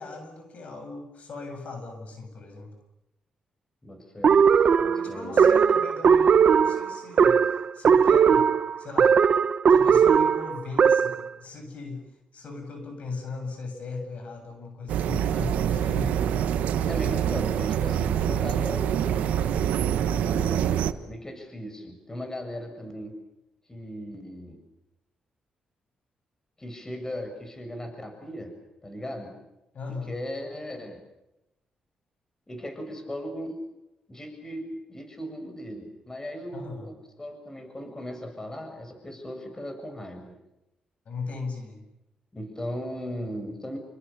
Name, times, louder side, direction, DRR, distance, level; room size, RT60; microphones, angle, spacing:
voice 1, 0.0-2.7 5.0-8.5 8.8-9.2 9.7-16.3 29.7-30.1 36.5-36.9 41.0-41.8, left 3 dB, 65° left, 6 dB, 7.8 m, -38 dB
voice 2, 3.8-4.5 4.8-5.5 16.8-19.3 19.9-23.2 23.7-24.6 26.6-28.5 28.8-29.4 29.9-31.0 32.5-33.6 34.1-40.4 42.3-43.8, equal, 20° left, 6 dB, 7.1 m, -37 dB
sound 1, 4.2-11.3, right 6 dB, 60° right, 1.2 m, -19 dB
sound 2, 14.9-20.9, right 9 dB, 90° right, 1.4 m, -25 dB
28.5 x 26.0 x 7.1 m, 0.93 s
cardioid pair, 70°, 2 cm